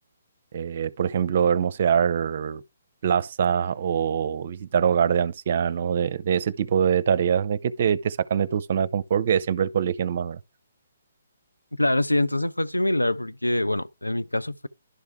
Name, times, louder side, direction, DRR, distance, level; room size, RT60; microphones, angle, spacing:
voice 1, 0.5-2.6 3.0-10.4, right 8 dB, 45° right, 0.6 m, -24 dB
voice 2, 11.8-14.7, left 1 dB, 85° left, 0.6 m, -24 dB
11.5 x 4.6 x 3.5 m
figure-of-eight pair, 130°, 0 cm